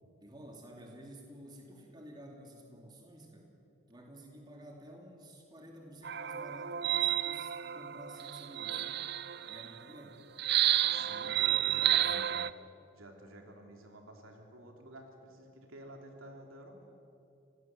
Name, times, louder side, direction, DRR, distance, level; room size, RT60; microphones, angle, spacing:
voice 1, 0.2-3.5 3.9-8.8 9.5-10.2 10.8-11.4, right 1 dB, 20° right, 1 dB, 2.9 m, -52 dB
sound 1, 6.0-9.8 10.4-12.5, right 12 dB, 50° right, 0.5 m, -31 dB
voice 2, 10.9-12.5 12.9-16.8, right 1 dB, 85° right, 3 dB, 3.3 m, -50 dB
26.5 x 18.0 x 7.8 m, 2.7 s
head